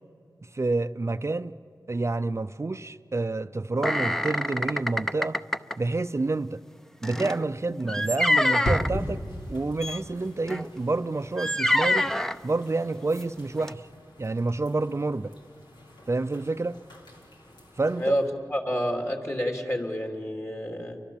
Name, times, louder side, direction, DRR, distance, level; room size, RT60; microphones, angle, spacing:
voice 1, 0.5-1.5 1.9-5.4 5.8-6.6 7.0-9.2 9.5-12.1 12.4-13.9 14.2-15.3 16.1-16.8 17.8-18.2, right 3 dB, 40° right, 0.6 m, -28 dB
sound 1, 3.8-5.7 7.0-8.9 9.8-10.0 10.5-10.7 11.4-12.4 13.1-13.2 13.6-13.7, left 1 dB, 5° left, 0.7 m, -26 dB
sound 2, 8.6-18.3, equal, 90° left, 3.9 m, -38 dB
voice 2, 17.9-21.0, equal, 35° left, 3.4 m, -29 dB
29.5 x 24.0 x 7.3 m
wide cardioid pair, 60°, 8 cm